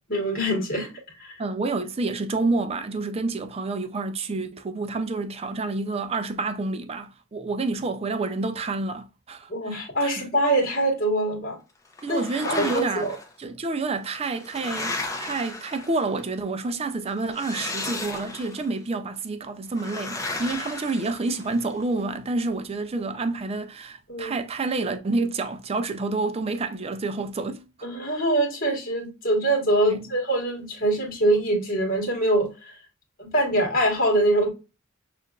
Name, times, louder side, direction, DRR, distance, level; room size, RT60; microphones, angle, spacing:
voice 1, 0.1-1.4 9.5-11.6 12.1-13.2 24.1-24.3 27.8-32.8 33.2-34.5, right 1 dB, 40° left, 1.5 m, -24 dB
voice 2, 1.4-10.3 12.0-13.1 13.4-27.6 29.9-30.1, right 3 dB, 30° right, 0.4 m, -29 dB
sound 1, 12.0-13.2 14.0-16.2 17.3-18.7 19.8-21.7, left 2 dB, 15° left, 0.6 m, -34 dB
6.4 x 2.5 x 2.3 m
head